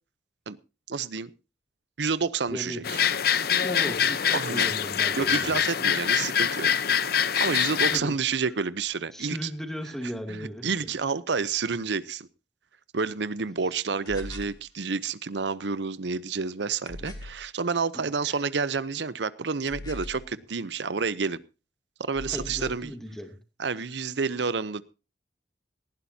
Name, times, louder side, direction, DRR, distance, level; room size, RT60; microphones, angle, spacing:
voice 1, 0.9-1.3 2.0-2.8 4.3-4.7 5.1-6.7 7.4-9.5 10.3-12.3 12.9-21.4 22.0-22.9 23.6-24.8, right 5 dB, 75° right, 18 dB, 0.8 m, -29 dB
voice 2, 2.5-2.8 3.6-5.5 7.8-8.2 9.1-10.9 17.9-18.4 22.3-23.3, equal, ahead, 5 dB, 2.6 m, -37 dB
sound 1, 2.8-8.0, left 8 dB, 60° left, 0.8 m, -24 dB
sound 2, 14.1-14.6 16.9-17.5 19.7-20.3 22.1-22.9, left 1 dB, 25° left, 3.6 m, -40 dB
18.5 x 15.5 x 2.8 m, 0.31 s
head